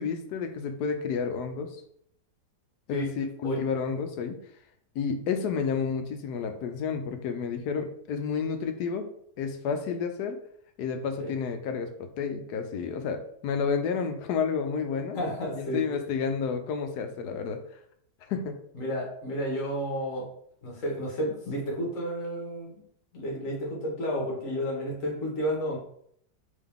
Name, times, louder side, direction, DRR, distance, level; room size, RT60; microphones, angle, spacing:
voice 1, 0.0-1.8 2.9-4.4 4.9-9.0 9.4-10.4 10.8-15.2 15.6-17.6 18.3-18.6, left 6 dB, 80° left, 7 dB, 1.1 m, -30 dB
voice 2, 15.1-15.8 18.7-20.3 20.6-22.8 23.1-25.8, equal, 55° left, -2 dB, 1.5 m, -31 dB
3.8 x 3.0 x 3.5 m, 0.67 s
omnidirectional pair, 1.8 m